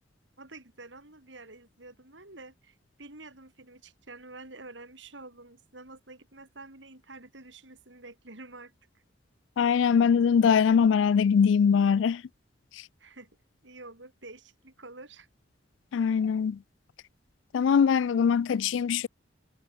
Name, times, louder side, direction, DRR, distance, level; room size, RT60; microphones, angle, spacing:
voice 1, 0.4-8.7 13.0-13.3 13.6-15.3, right 2 dB, 70° right, 6.4 m, -48 dB
voice 2, 9.6-12.2 15.9-16.6 17.5-19.1, left 6 dB, 75° left, 0.3 m, -22 dB
head